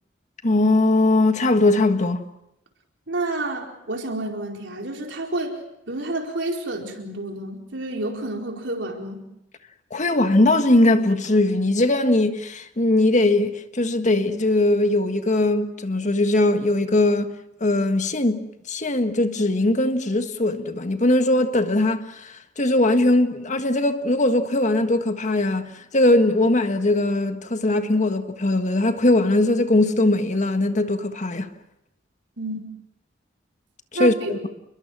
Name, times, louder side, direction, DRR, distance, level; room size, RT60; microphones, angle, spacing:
voice 1, 0.4-2.2 9.9-17.3 17.6-31.5 33.9-34.4, left 2 dB, 40° left, 1.6 m, -20 dB
voice 2, 3.1-5.6 5.9-9.3 32.4-32.7 33.9-34.4, right 2 dB, 75° right, 4.5 m, -29 dB
29.0 x 22.0 x 6.2 m
head